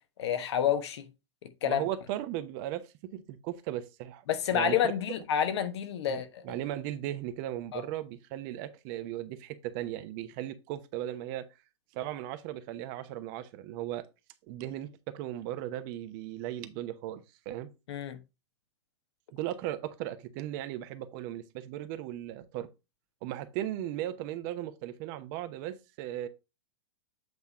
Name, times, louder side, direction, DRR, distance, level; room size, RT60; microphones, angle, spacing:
voice 1, 0.2-1.1 1.4-1.8 4.3-6.6 7.7-7.8 17.9-18.2, left 9 dB, 70° left, 1.2 m, -29 dB
voice 2, 1.6-2.8 3.1-4.9 6.1-11.5 11.9-14.0 14.5-17.7 19.3-22.7 23.2-26.3, right 13 dB, 45° right, 0.9 m, -37 dB
8.0 x 3.5 x 4.2 m
hypercardioid pair, 125°, 15 cm